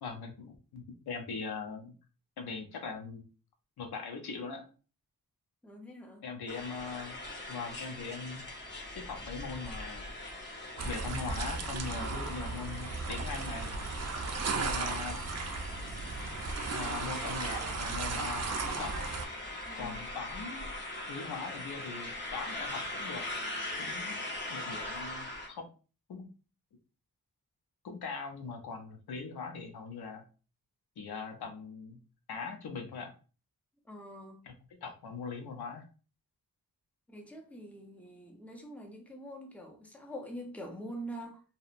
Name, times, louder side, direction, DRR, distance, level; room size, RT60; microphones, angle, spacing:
voice 1, 0.0-1.9 2.4-3.3 3.8-4.7 6.2-7.2 7.5-8.4 9.0-10.1 10.8-13.7 14.5-15.2 16.7-18.9 19.8-20.6 21.1-23.2 23.8-24.2 24.5-25.7 26.1-26.3 27.8-30.2 31.0-32.0 32.3-33.1 34.4-34.5 34.8-35.9, left 5 dB, 90° left, 0.6 m, -41 dB
voice 2, 5.6-6.3 19.7-20.1 24.0-24.2 33.8-34.4 37.1-41.4, equal, 5° left, 0.6 m, -45 dB
sound 1, 6.5-25.5, left 1 dB, 30° left, 0.8 m, -41 dB
sound 2, 10.8-19.2, right 4 dB, 45° right, 0.4 m, -36 dB
2.7 x 2.1 x 2.4 m
wide cardioid pair, 90°, 37 cm